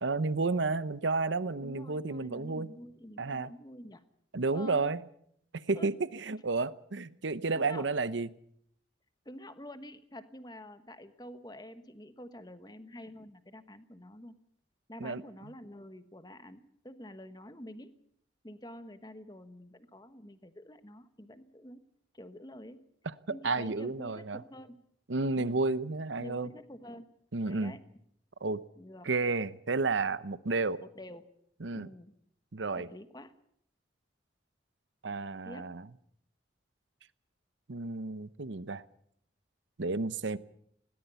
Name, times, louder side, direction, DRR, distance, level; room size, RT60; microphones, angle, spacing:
voice 1, 0.0-2.7 3.2-3.5 4.3-5.0 5.5-8.3 15.0-15.2 23.1-23.2 23.4-24.4 25.1-26.5 27.3-27.7 28.4-28.6 29.0-30.8 31.6-31.9 32.5-32.9 35.0-35.9 37.7-38.8 39.8-40.4, right 3 dB, 75° right, 16 dB, 0.8 m, -31 dB
voice 2, 1.6-4.0 4.5-4.8 5.7-5.9 7.5-7.8 9.2-14.3 14.9-17.9 18.4-21.8 22.1-22.8 23.3-24.8 25.3-25.6 26.2-27.1 27.5-27.8 28.8-29.1 30.8-31.3 31.7-32.1 32.8-33.3 35.4-35.7, left 1 dB, 20° left, 11 dB, 1.2 m, -48 dB
20.5 x 18.0 x 6.9 m, 0.69 s
head